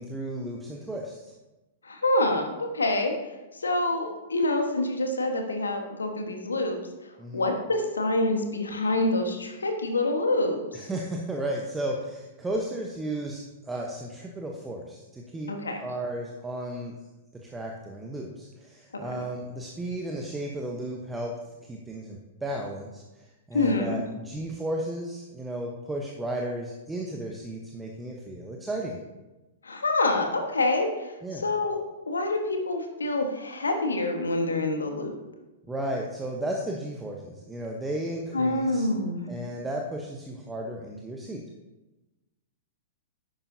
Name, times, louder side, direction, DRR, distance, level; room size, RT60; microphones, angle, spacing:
voice 1, 0.0-1.3 7.2-7.5 10.7-15.5 15.8-16.9 17.4-21.3 21.7-23.0 23.5-29.0 31.2-31.4 35.7-38.9 39.3-41.4, right 1 dB, 10° right, 0 dB, 1.1 m, -34 dB
voice 2, 1.8-3.1 3.6-6.8 7.3-10.6 15.5-15.8 18.9-19.1 23.5-24.1 29.6-31.8 32.1-35.1 38.3-39.3, left 2 dB, 75° left, 4 dB, 1.5 m, -26 dB
11.0 x 8.9 x 2.8 m, 1.1 s
figure-of-eight pair, 100°, 0 cm